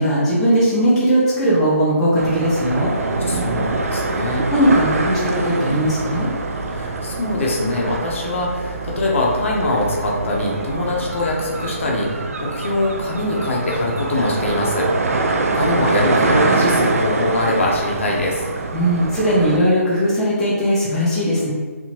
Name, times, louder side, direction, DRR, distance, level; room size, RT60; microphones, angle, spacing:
voice 1, 0.0-2.9 4.5-6.3 18.7-21.5, equal, 5° left, -10 dB, 0.6 m, -18 dB
sound 1, 2.2-19.6, right 3 dB, 70° right, 0.4 m, -24 dB
voice 2, 3.3-4.5 6.7-14.9 15.5-18.5, left 1 dB, 55° left, -2 dB, 0.7 m, -22 dB
2.8 x 2.5 x 2.8 m, 1.5 s
hypercardioid pair, 155°, 8 cm